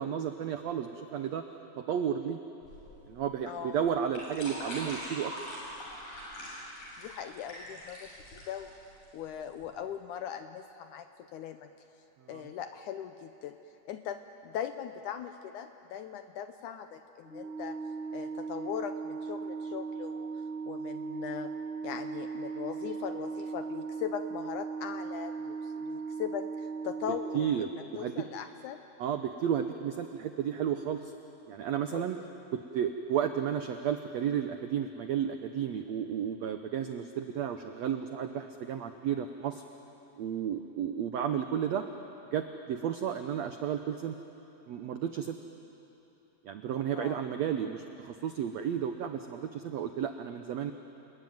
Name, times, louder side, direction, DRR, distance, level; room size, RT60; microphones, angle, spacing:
voice 1, 0.0-1.4 1.8-2.4 3.1-5.3 12.3-12.5 27.1-28.1 29.0-31.1 31.5-32.2 32.5-39.6 40.2-41.9 42.3-44.2 44.7-45.3 46.4-50.7, right 8 dB, 90° right, 7 dB, 1.5 m, -32 dB
sound 1, 2.6-9.7, equal, 60° left, 8.6 m, -43 dB
voice 2, 3.5-3.8 7.0-8.7 9.1-11.7 12.3-13.6 13.9-14.2 14.4-17.8 18.1-20.3 20.7-21.5 21.8-27.7 28.0-28.8 31.9-32.1 47.0-47.2, left 9 dB, 75° left, 8 dB, 1.9 m, -40 dB
Organ, 17.2-28.1, right 5 dB, 5° right, 1.2 m, -38 dB
29.5 x 21.0 x 9.4 m, 3.0 s
omnidirectional pair, 4.3 m